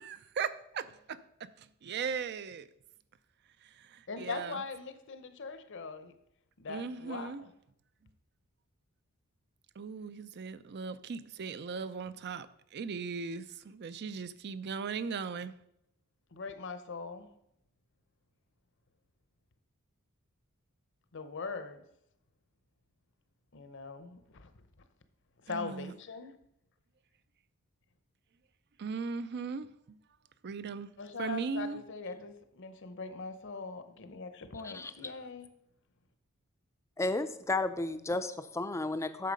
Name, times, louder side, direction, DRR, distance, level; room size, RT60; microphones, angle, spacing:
voice 1, 0.0-2.7 3.6-4.6 6.7-7.4 9.8-15.5 25.5-25.9 28.8-30.0 30.4-30.9 31.2-31.8, right 5 dB, 50° right, 0.4 m, -38 dB
voice 2, 4.1-6.1 6.6-7.5 16.3-17.3 21.1-21.8 23.5-24.5 25.4-26.3 31.0-35.5, left 4 dB, 55° left, 0.8 m, -41 dB
voice 3, 34.6-35.1 37.0-39.3, left 2 dB, 15° left, 0.4 m, -33 dB
8.5 x 6.5 x 5.2 m
head